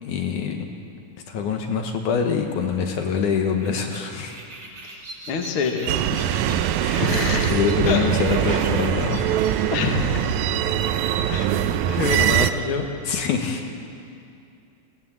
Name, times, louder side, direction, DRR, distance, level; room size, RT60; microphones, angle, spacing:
voice 1, 0.0-0.7 1.3-4.4 6.2-6.3 6.8-7.1 7.5-9.4 13.1-13.6, left 6 dB, 70° left, 3 dB, 2.5 m, -25 dB
sound 1, 1.4-11.5, right 2 dB, 40° right, 3.0 m, -42 dB
voice 2, 4.8-5.9 7.0-7.5 7.9-8.1 8.5-8.6 9.7-10.6 11.3-11.5 11.8-12.9, left 5 dB, 50° left, 3 dB, 2.0 m, -26 dB
sound 2, 5.9-12.5, right 10 dB, 75° right, 1.8 m, -22 dB
20.5 x 17.5 x 7.5 m, 2.5 s
omnidirectional pair, 3.9 m